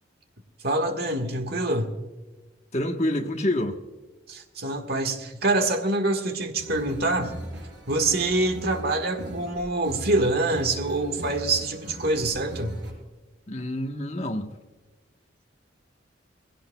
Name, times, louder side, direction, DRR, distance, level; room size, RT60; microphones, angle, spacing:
voice 1, 0.6-1.9 4.3-7.3 7.9-12.7, right 2 dB, 55° right, 1.7 m, -25 dB
voice 2, 2.7-3.8 13.5-14.5, left 1 dB, 35° left, 1.2 m, -27 dB
sound 1, 6.6-12.9, right 1 dB, 70° right, 5.4 m, -39 dB
20.5 x 16.5 x 2.3 m
head